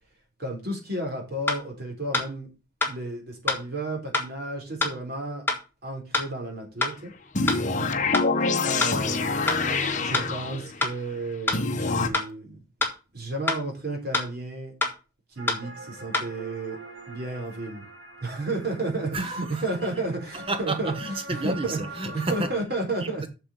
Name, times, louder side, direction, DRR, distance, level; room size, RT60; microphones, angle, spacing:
voice 1, 0.4-2.5 2.9-5.4 5.8-7.1 8.6-9.3 10.0-12.6 13.1-14.7 15.3-16.8 17.1-17.8 18.2-20.9 21.3-21.8 22.1-23.3, right 2 dB, 55° right, 4.2 m, -32 dB
sound 1, 1.5-1.6 2.1-2.3 2.8-2.9 3.5-3.6 4.1-4.3 4.8-4.9 5.5-5.6 6.1-6.3 6.8-6.9 7.5-7.6 8.1-8.3 8.8-8.9 9.5-9.6 10.1-10.3 10.8-10.9 11.5-11.6 12.1-12.3 12.8-12.9 13.5-13.6 14.1-14.3 14.8-14.9 15.5-15.6 16.1-16.3, left 3 dB, 10° left, 2.3 m, -25 dB
sound 2, 7.3-10.8 11.5-12.1, left 3 dB, 40° left, 1.2 m, -26 dB
voice 2, 7.6-7.9 19.1-19.6 20.3-22.5 23.0-23.3, right 2 dB, 30° right, 0.8 m, -32 dB
sound 3, 15.4-22.6, right 2 dB, 75° right, 3.3 m, -43 dB
7.3 x 6.8 x 6.4 m
head